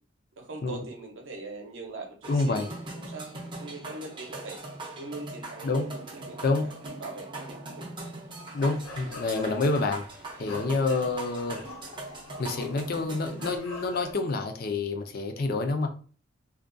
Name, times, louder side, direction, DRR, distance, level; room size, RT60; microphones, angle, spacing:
voice 1, 0.4-2.7 3.1-4.6 5.0-7.9 9.0-9.2 10.8-11.0, right 2 dB, 65° right, 2 dB, 0.7 m, -42 dB
sound 1, 2.2-13.6, right 2 dB, 25° right, 0.5 m, -41 dB
voice 2, 2.3-2.7 3.8-3.9 5.6-5.9 6.4-6.7 8.5-10.0 10.4-11.6 12.4-15.9, left 3 dB, 50° left, 5 dB, 0.4 m, -28 dB
sound 2, 8.6-14.1, left 2 dB, 85° left, 0.8 m, -45 dB
2.4 x 2.2 x 2.5 m, 0.41 s
head